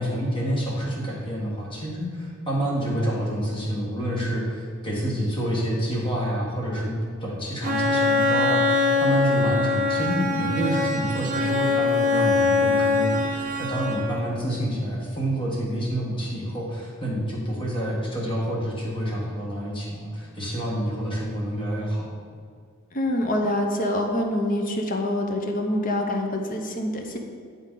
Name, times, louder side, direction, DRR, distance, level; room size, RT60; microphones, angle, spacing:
voice 1, 0.0-22.1, right 1 dB, 25° left, -4 dB, 1.4 m, -28 dB
Bowed string instrument, 7.6-14.3, left 3 dB, 35° right, 0.7 m, -23 dB
voice 2, 22.9-27.2, left 1 dB, 40° left, 3 dB, 0.7 m, -25 dB
10.0 x 3.9 x 3.8 m, 2.1 s
head